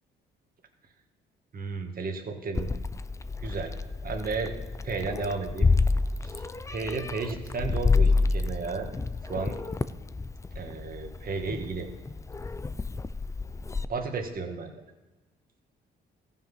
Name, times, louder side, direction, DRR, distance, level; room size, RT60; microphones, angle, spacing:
voice 1, 1.5-2.7 3.4-3.7 4.0-4.5 4.8-5.7 6.2-8.9 9.2-9.5 10.6-11.9 13.9-14.7, right 4 dB, 45° right, 3 dB, 1.8 m, -33 dB
Meow, 2.5-13.8, left 3 dB, 15° left, 0.4 m, -29 dB
14.5 x 5.8 x 5.7 m, 1.2 s
cardioid pair, 90°, 20 cm